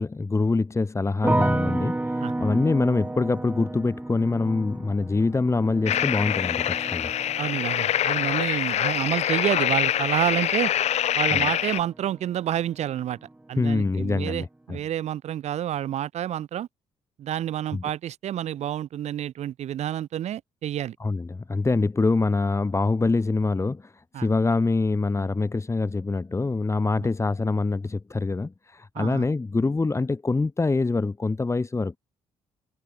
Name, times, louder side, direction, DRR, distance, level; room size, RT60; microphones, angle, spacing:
voice 1, 0.0-7.1 11.3-11.5 13.6-14.8 17.7-17.8 21.0-32.0, left 3 dB, 25° left, 2.4 m, -25 dB
sound 1, 1.2-12.3 12.6-13.3, right 2 dB, 10° right, 1.6 m, -32 dB
sound 2, 5.9-11.8, left 11 dB, 65° left, 1.6 m, -25 dB
voice 2, 7.4-10.7 11.2-13.2 13.5-16.7 17.2-21.0 24.1-24.3 27.0-27.1 29.0-29.2, right 11 dB, 65° right, 1.9 m, -29 dB
supercardioid pair, 70°, 12 cm